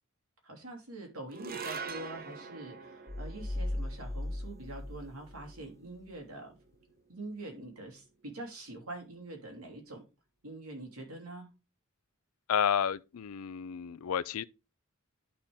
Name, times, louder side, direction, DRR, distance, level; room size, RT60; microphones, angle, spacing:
voice 1, 0.4-6.5 7.1-10.0 10.4-11.5, right 2 dB, 80° right, 2.9 m, -45 dB
sound 1, 1.3-7.8, right 5 dB, 45° right, 0.9 m, -46 dB
sound 2, 3.1-5.7, left 1 dB, 15° left, 0.4 m, -37 dB
voice 2, 12.5-14.4, left 8 dB, 85° left, 0.4 m, -31 dB
11.5 x 4.3 x 3.5 m
head